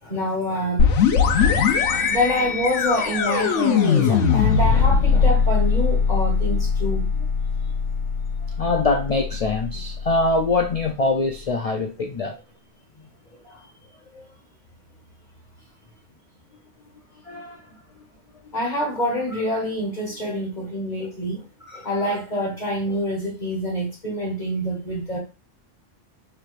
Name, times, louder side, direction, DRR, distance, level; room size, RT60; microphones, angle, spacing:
voice 1, 0.0-1.1 1.4-1.6 1.9-7.1 13.4-13.6 14.1-14.3 18.5-25.2, equal, 40° left, -2 dB, 1.3 m, -26 dB
sound 1, 0.8-10.4, left 6 dB, 85° left, 1.0 m, -20 dB
voice 2, 8.4-12.3 17.2-17.7 18.4-18.5, left 3 dB, 70° left, 4 dB, 0.3 m, -23 dB
4.6 x 3.3 x 2.5 m, 0.31 s
omnidirectional pair, 1.2 m